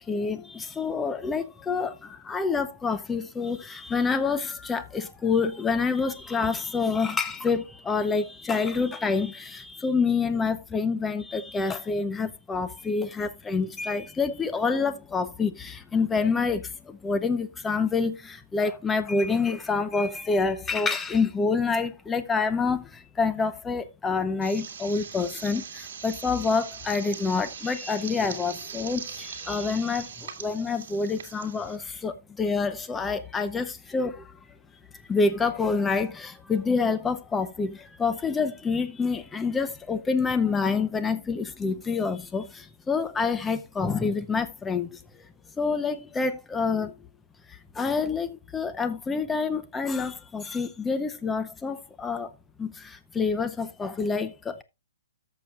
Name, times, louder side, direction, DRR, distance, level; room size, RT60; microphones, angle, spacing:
voice 1, 0.1-34.4 35.1-45.0 45.6-46.9 47.5-52.3 52.6-54.6, left 4 dB, 10° left, 0.7 m, -27 dB
sound 1, 24.4-31.8, right 7 dB, 55° right, 2.3 m, -40 dB
13.5 x 6.9 x 2.4 m
hypercardioid pair, 160°, 0 cm